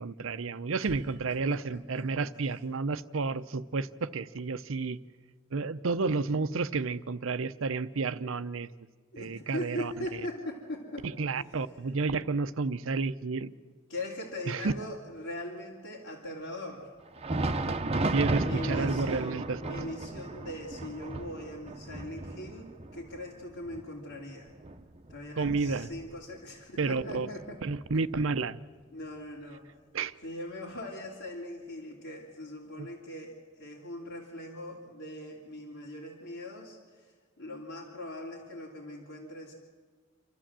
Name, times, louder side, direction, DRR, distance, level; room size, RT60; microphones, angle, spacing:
voice 1, 0.0-5.0 5.5-8.7 9.2-9.9 11.0-13.5 14.5-14.7 18.1-19.9 25.4-25.9 26.8-27.3 27.6-28.6 29.9-30.1 32.8-32.9, right 4 dB, 80° right, 14 dB, 0.7 m, -31 dB
voice 2, 0.8-2.3 9.1-11.1 11.4-11.5 13.9-16.9 18.4-24.5 25.1-27.6 28.9-29.6 30.2-39.5, left 1 dB, 80° left, -5 dB, 2.9 m, -41 dB
Thunder, 17.0-26.5 26.8-27.0 27.7-27.9 28.9-29.0, right 2 dB, 30° right, 0.8 m, -34 dB
28.0 x 13.0 x 7.5 m, 1.5 s
head